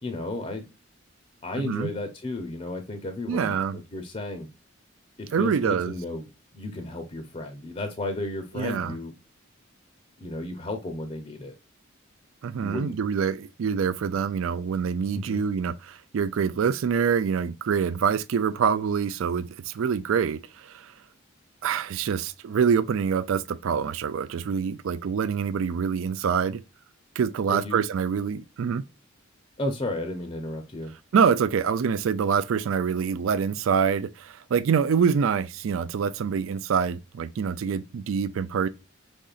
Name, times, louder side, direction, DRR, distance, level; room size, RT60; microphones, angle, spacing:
voice 1, 0.0-0.6 1.4-4.5 5.2-9.1 10.2-11.5 12.6-13.0 15.1-15.4 27.5-27.8 29.6-30.9, left 2 dB, 30° left, 0.6 m, -33 dB
voice 2, 1.6-1.9 3.3-3.8 5.3-5.9 8.5-9.0 12.4-20.9 21.6-26.6 27.2-28.8 31.1-38.7, right 6 dB, 80° right, 0.4 m, -25 dB
5.3 x 3.7 x 2.4 m
head